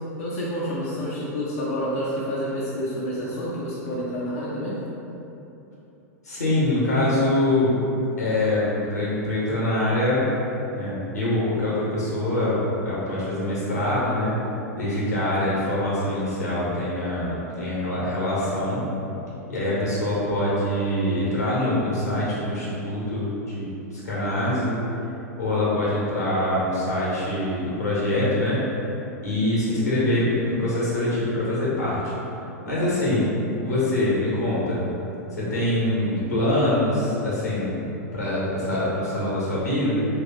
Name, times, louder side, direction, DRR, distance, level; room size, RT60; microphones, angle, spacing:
voice 1, 0.2-4.8 29.7-30.2, equal, 65° left, -7 dB, 0.7 m, -29 dB
voice 2, 6.2-7.8 8.2-10.3 10.7-14.4 14.8-18.8 19.5-24.8 25.4-28.6 29.2-32.1 32.6-33.3 33.6-34.8 35.3-37.7 38.1-40.1, left 1 dB, 90° left, -7 dB, 1.1 m, -24 dB
3.6 x 3.0 x 3.0 m, 3.0 s
hypercardioid pair, 100°, 9 cm